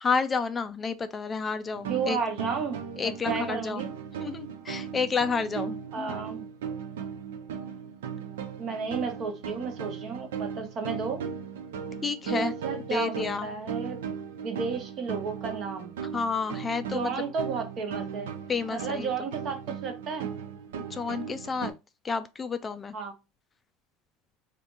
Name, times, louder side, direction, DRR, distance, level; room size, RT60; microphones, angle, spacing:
voice 1, 0.0-2.2 3.0-3.9 4.2-6.1 12.0-12.5 12.9-13.5 16.1-17.1 18.5-19.1 20.9-21.7 22.0-23.0, left 5 dB, 25° left, 0.3 m, -30 dB
sound 1, 1.7-21.7, right 7 dB, 90° right, 0.5 m, -37 dB
voice 2, 1.9-3.9 5.9-6.5 8.6-11.3 12.3-13.1 13.4-14.1 14.4-15.9 16.9-18.3 18.7-20.4 22.9-23.1, right 5 dB, 50° right, 1.0 m, -33 dB
2.8 x 2.5 x 3.7 m
supercardioid pair, 95°, 0 cm